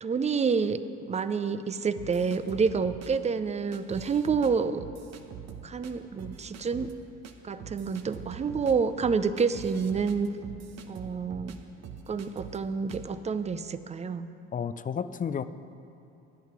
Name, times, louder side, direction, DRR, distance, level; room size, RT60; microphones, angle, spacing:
voice 1, 0.0-0.8 1.1-4.8 5.6-6.9 7.4-10.3 10.9-11.6 12.1-14.3, right 5 dB, 20° right, 12 dB, 0.6 m, -28 dB
sound 1, 2.0-3.1 3.7-4.5 4.8-5.9 6.2-6.9 7.2-7.3 7.6-11.6 11.8-12.6 12.9-13.1, right 7 dB, 55° right, 1.1 m, -43 dB
voice 2, 14.5-15.4, left 7 dB, 25° left, 13 dB, 0.5 m, -31 dB
11.5 x 8.9 x 6.1 m, 2.6 s
hypercardioid pair, 70°, 31 cm